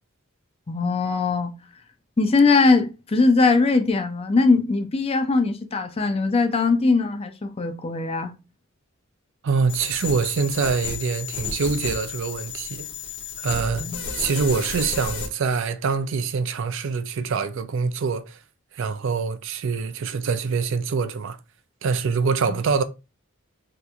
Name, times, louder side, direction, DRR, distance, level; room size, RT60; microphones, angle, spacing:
voice 1, 0.7-1.5 2.2-8.4 13.8-14.0 22.5-22.6, left 3 dB, 25° left, 0.4 m, -20 dB
voice 2, 9.4-12.9 13.4-13.9 14.1-18.4 18.7-21.4 21.8-22.8, right 5 dB, 60° right, 0.4 m, -25 dB
sound 1, 9.7-15.3, left 5 dB, 55° left, 0.8 m, -32 dB
2.8 x 2.5 x 3.4 m
head